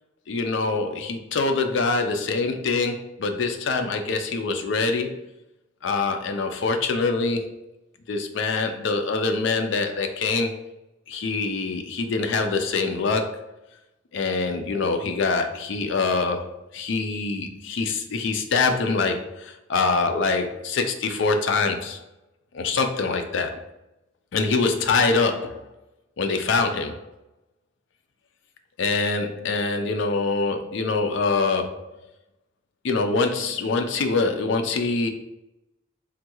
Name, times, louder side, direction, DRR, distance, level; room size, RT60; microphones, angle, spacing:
voice 1, 0.3-5.1 5.8-7.5 8.1-10.5 11.1-13.4 14.1-22.0 22.5-23.6 24.3-25.6 26.2-27.0 28.8-31.8 32.8-35.1, left 4 dB, 65° left, 5 dB, 0.4 m, -24 dB
3.6 x 2.2 x 2.9 m, 0.91 s
head